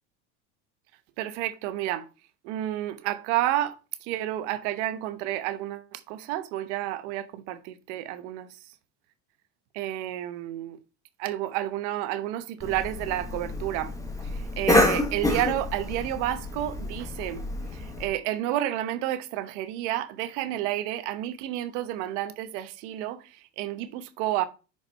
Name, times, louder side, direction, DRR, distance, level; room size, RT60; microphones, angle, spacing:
voice 1, 1.2-2.1 2.4-8.7 9.7-10.8 11.2-13.9 14.2-17.5 17.7-24.5, right 13 dB, 80° right, 1.0 m, -30 dB
Cough, 12.6-18.1, left 1 dB, 10° left, 1.3 m, -28 dB
6.4 x 4.9 x 4.0 m
supercardioid pair, 110°, 35 cm